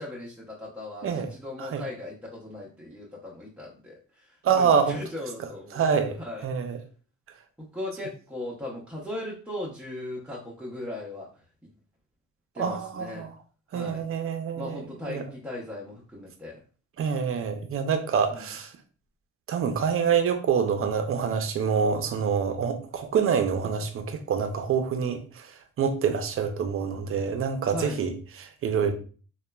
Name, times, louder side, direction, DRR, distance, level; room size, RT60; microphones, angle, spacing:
voice 1, 0.0-6.5 7.7-11.3 12.5-13.3 13.7-14.1 14.5-16.6 18.3-18.5 27.7-28.0, left 1 dB, 5° right, 0.6 m, -38 dB
voice 2, 4.4-5.0 5.7-6.2 6.4-6.8 12.6-13.3 13.7-15.2 17.0-18.7 19.5-25.5 25.8-28.1 28.4-28.9, right 6 dB, 45° right, 0.5 m, -26 dB
2.9 x 2.2 x 2.2 m
cardioid pair, 90°, 30 cm